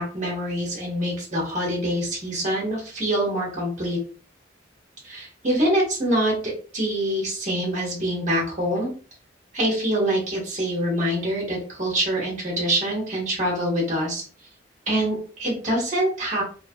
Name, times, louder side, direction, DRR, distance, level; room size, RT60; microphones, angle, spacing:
voice 1, 0.0-4.0 5.0-6.3 6.7-8.9 9.5-14.2 14.9-16.4, right 1 dB, 40° right, -3 dB, 1.4 m, -25 dB
3.1 x 2.4 x 2.3 m, 0.39 s
head